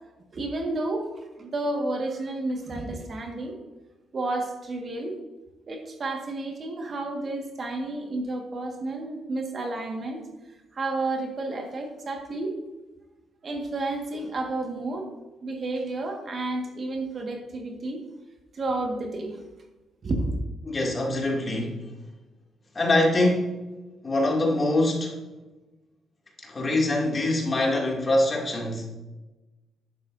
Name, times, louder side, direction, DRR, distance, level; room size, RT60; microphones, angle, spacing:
voice 1, 0.3-3.6 4.1-5.2 5.7-10.2 10.7-12.5 13.4-15.1 15.4-18.0 18.5-19.4 20.0-20.3, right 2 dB, 45° right, 2 dB, 1.7 m, -31 dB
voice 2, 20.6-21.9 22.7-23.5 24.0-25.2 26.4-28.9, left 1 dB, 30° left, -1 dB, 2.5 m, -24 dB
11.0 x 10.5 x 2.7 m, 1.1 s
cardioid pair, 90°, 0 cm